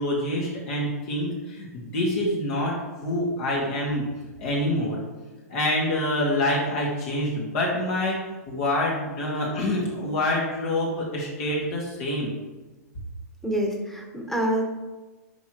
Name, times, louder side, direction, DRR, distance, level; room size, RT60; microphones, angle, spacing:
voice 1, 0.0-2.8 3.0-4.1 4.4-5.0 5.5-8.2 8.5-12.3, left 1 dB, 50° left, -4 dB, 2.1 m, -26 dB
voice 2, 13.4-14.6, right 1 dB, 5° left, 0 dB, 1.5 m, -26 dB
10.5 x 5.0 x 3.1 m, 1.2 s
hypercardioid pair, 125°, 9 cm